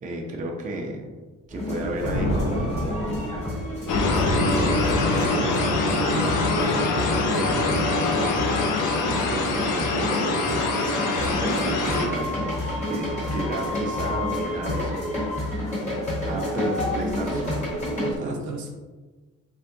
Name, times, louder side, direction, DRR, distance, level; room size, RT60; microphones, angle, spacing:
voice 1, 0.0-1.1 1.5-3.0 3.8-6.8 7.4-10.6 11.3-15.2 16.2-17.7 18.2-18.4, right 1 dB, 25° right, 0 dB, 0.4 m, -33 dB
sound 1, 1.5-18.2, left 1 dB, 20° left, 1.3 m, -29 dB
Thunder, 1.7-4.0, equal, 40° left, 0.6 m, -29 dB
sound 2, 3.9-12.1, left 3 dB, 85° left, 0.6 m, -24 dB
voice 2, 18.0-18.7, right 3 dB, 75° right, 1 dB, 0.7 m, -34 dB
3.3 x 2.6 x 2.6 m, 1.3 s
cardioid pair, 120°, 31 cm